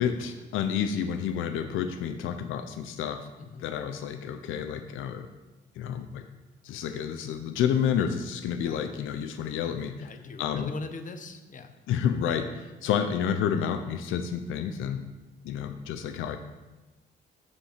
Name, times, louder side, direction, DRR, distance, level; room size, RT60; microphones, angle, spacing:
voice 1, 0.0-3.2 3.6-5.3 5.8-6.2 6.6-10.1 10.4-10.7 11.9-12.5 12.8-15.0 15.4-16.4, left 8 dB, 85° left, 8 dB, 0.6 m, -29 dB
voice 2, 10.0-11.8, left 4 dB, 40° left, 8 dB, 0.9 m, -41 dB
8.2 x 5.4 x 5.0 m, 1.1 s
cardioid pair, 90°, 20 cm